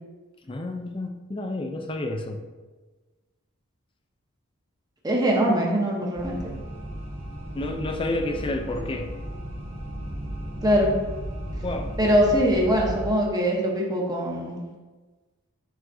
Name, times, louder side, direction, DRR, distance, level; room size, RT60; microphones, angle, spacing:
voice 1, 0.5-2.4 7.5-9.2 11.6-12.0, left 2 dB, 25° left, 5 dB, 0.4 m, -30 dB
voice 2, 5.0-6.4 10.6-10.9 12.0-14.6, equal, 15° right, -2 dB, 0.8 m, -22 dB
sound 1, 6.2-13.1, equal, 60° right, 1.7 m, -35 dB
11.0 x 3.7 x 2.6 m, 1.3 s
head